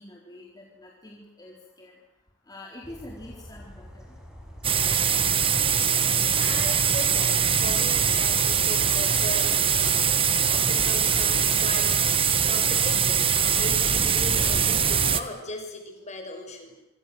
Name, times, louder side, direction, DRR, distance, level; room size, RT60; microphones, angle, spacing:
voice 1, 0.0-1.9 2.5-4.1, left 1 dB, 20° left, -2 dB, 4.1 m, -45 dB
sound 1, 2.8-13.9, equal, 5° right, 6.6 m, -45 dB
sound 2, 4.6-15.2, right 7 dB, 30° right, 1.5 m, -22 dB
voice 2, 6.4-12.0 12.4-16.7, left 2 dB, 35° left, 4 dB, 6.4 m, -38 dB
27.0 x 25.0 x 8.0 m, 0.91 s
head